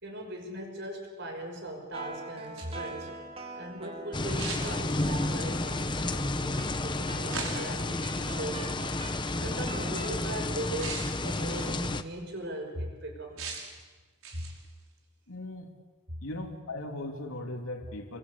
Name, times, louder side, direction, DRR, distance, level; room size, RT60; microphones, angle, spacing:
voice 1, 0.0-3.1 3.5-8.9 9.4-13.6 14.3-14.5, right 1 dB, 50° right, 3 dB, 6.1 m, -39 dB
sound 1, 1.9-10.3, right 2 dB, 25° right, 2.2 m, -44 dB
sound 2, 2.4-2.9 4.4-5.3 7.3-7.8 8.8-9.0 10.8-11.9 13.4-13.8 14.2-14.7, right 4 dB, 75° right, 5.8 m, -40 dB
sound 3, 4.1-12.0, left 2 dB, 20° left, 0.9 m, -31 dB
voice 2, 15.3-15.7 16.2-18.2, left 1 dB, 75° left, 3 dB, 3.2 m, -38 dB
29.5 x 23.5 x 8.4 m, 1.3 s
head